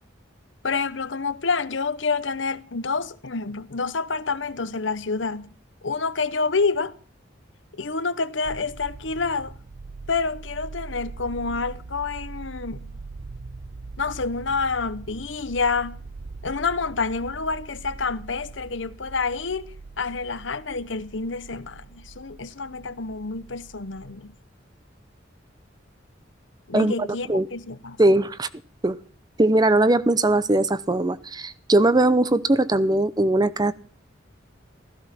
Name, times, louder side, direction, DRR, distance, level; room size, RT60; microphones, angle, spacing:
voice 1, 0.6-5.5 5.8-6.9 7.7-9.5 10.1-12.9 14.0-16.0 16.4-24.3 26.7-28.0, left 4 dB, 75° left, 1.0 m, -28 dB
sound 1, 8.4-24.3, right 3 dB, 55° right, 0.7 m, -41 dB
voice 2, 26.7-27.5 28.0-28.5 28.8-29.0 29.4-33.7, right 2 dB, 20° right, 0.7 m, -20 dB
16.0 x 14.5 x 6.0 m
head